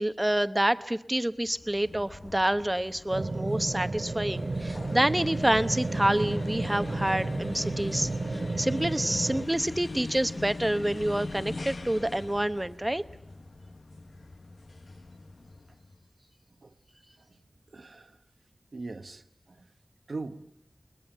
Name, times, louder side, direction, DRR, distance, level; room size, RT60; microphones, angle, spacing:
voice 1, 0.0-13.0, right 1 dB, 20° right, 0.9 m, -28 dB
sound 1, 1.5-16.0, left 2 dB, 85° left, 1.1 m, -41 dB
sound 2, 3.1-9.5, right 3 dB, 65° right, 0.8 m, -32 dB
voice 2, 17.7-18.2 18.7-19.7 20.1-20.5, right 3 dB, 85° right, 1.1 m, -41 dB
22.0 x 20.5 x 8.9 m
wide cardioid pair, 70°, 0 cm